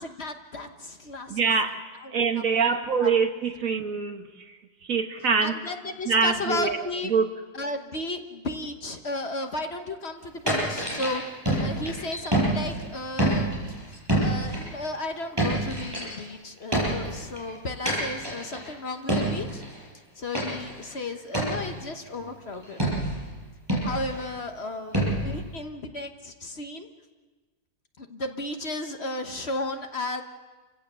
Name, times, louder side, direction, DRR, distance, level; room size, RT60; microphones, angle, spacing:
voice 1, 0.0-1.4 2.0-3.1 5.4-7.1 7.5-11.2 11.6-13.8 14.1-19.6 20.1-22.8 23.8-26.9 28.0-30.2, left 2 dB, 45° left, 5 dB, 1.3 m, -34 dB
voice 2, 1.3-1.8 2.1-4.5 4.8-5.6 6.0-6.8 7.0-7.3, right 5 dB, 55° right, 6 dB, 1.6 m, -24 dB
sound 1, 10.5-12.9 13.2-14.7 15.2-16.2 16.7-17.4 17.9-18.7 19.1-19.7 20.3-20.9 21.3-21.8 22.8-23.4 23.7-24.2 24.9-25.6, right 1 dB, 15° right, 7.3 m, -27 dB
29.5 x 16.0 x 6.9 m, 1.3 s
omnidirectional pair, 1.7 m